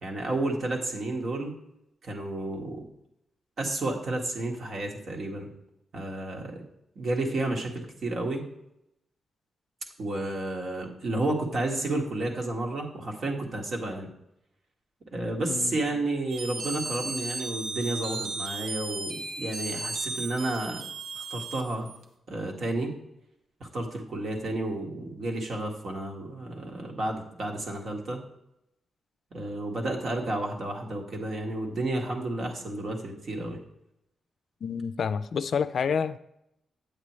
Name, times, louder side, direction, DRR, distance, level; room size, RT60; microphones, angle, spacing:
voice 1, 0.0-1.5 2.0-2.8 3.6-5.5 5.9-6.6 6.9-8.5 10.0-14.1 15.1-20.8 21.1-21.9 22.3-22.9 23.6-28.2 29.3-33.6, right 2 dB, 60° right, 0 dB, 1.7 m, -31 dB
voice 2, 15.5-15.8 34.6-36.2, left 6 dB, 65° left, 13 dB, 0.3 m, -29 dB
sound 1, 16.3-22.0, right 3 dB, 90° right, 0.8 m, -35 dB
8.8 x 8.3 x 3.1 m, 0.81 s
cardioid pair, 95°, 0 cm